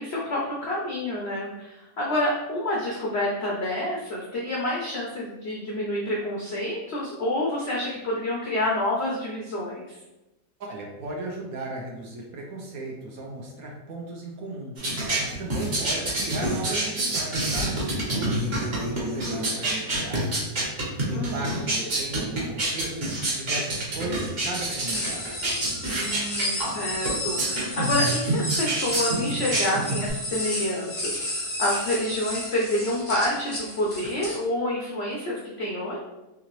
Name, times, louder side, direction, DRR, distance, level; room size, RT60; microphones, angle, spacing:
voice 1, 0.0-10.0 21.1-21.6 25.9-36.0, left 1 dB, 75° left, -3 dB, 0.6 m, -28 dB
voice 2, 10.7-14.7 15.2-20.4 20.8-25.5, right 2 dB, 65° right, 0 dB, 1.0 m, -36 dB
sound 1, 14.8-30.1, right 1 dB, 40° right, 1.1 m, -27 dB
sound 2, 24.9-34.4, left 1 dB, 30° left, 0.6 m, -32 dB
3.8 x 2.9 x 2.9 m, 0.99 s
omnidirectional pair, 1.9 m